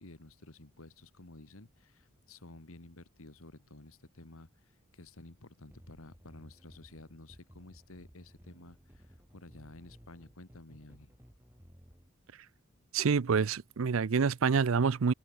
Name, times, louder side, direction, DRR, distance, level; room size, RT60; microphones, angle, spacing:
voice 1, 0.0-11.1, left 2 dB, 75° left, 1.9 m, -53 dB
sound 1, 5.7-12.1, equal, 10° right, 6.1 m, -57 dB
voice 2, 12.9-15.1, right 5 dB, 65° right, 0.5 m, -27 dB
open air
head